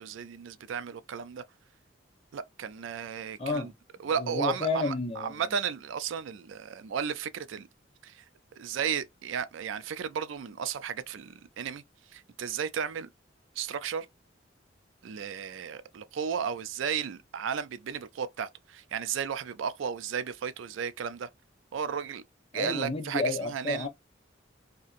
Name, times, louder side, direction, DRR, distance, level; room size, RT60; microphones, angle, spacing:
voice 1, 0.0-1.4 2.3-3.7 4.0-7.7 8.0-8.2 8.6-11.8 12.1-13.1 13.6-14.1 15.0-21.3 21.7-22.2 22.5-23.9, right 7 dB, 85° right, 0.4 m, -34 dB
voice 2, 3.4-3.7 4.2-5.4 22.5-23.9, left 3 dB, 30° left, 0.7 m, -31 dB
2.8 x 2.5 x 2.4 m
head